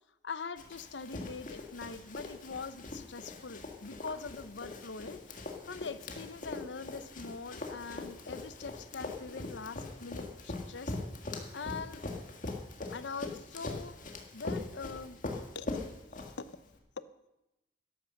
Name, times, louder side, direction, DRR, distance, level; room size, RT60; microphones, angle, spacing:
voice 1, 0.2-5.2 5.6-11.0 11.5-12.1 12.9-14.0 14.3-15.2 15.5-15.7 16.2-16.6, left 4 dB, 75° left, 14 dB, 0.7 m, -43 dB
Run, 0.6-16.7, left 2 dB, 45° left, 1.9 m, -42 dB
12.5 x 11.5 x 6.4 m, 0.93 s
head